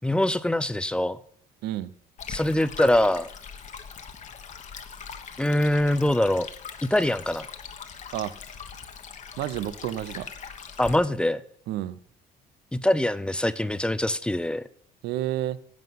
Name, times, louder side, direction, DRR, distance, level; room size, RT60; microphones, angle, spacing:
voice 1, 0.0-1.2 2.3-3.3 5.4-6.5 6.9-7.5 10.8-11.4 12.7-14.6, left 1 dB, 5° left, 0.5 m, -23 dB
Stream, 2.2-11.0, left 6 dB, 45° left, 1.2 m, -41 dB
voice 2, 9.4-10.3 11.7-12.0 15.0-15.6, right 13 dB, 75° right, 0.7 m, -30 dB
11.0 x 7.6 x 5.7 m
cardioid pair, 100°, 18 cm